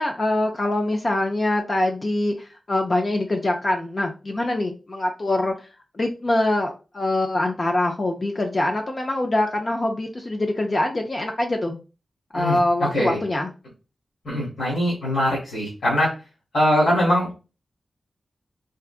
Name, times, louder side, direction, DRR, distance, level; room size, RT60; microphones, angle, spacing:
voice 1, 0.0-5.5 5.9-11.8 12.3-13.5, left 1 dB, 35° left, 2 dB, 0.4 m, -24 dB
voice 2, 14.2-16.1 16.5-17.4, equal, 75° left, -7 dB, 1.8 m, -22 dB
3.7 x 2.3 x 2.4 m, 0.32 s
wide cardioid pair, 120°, 0 cm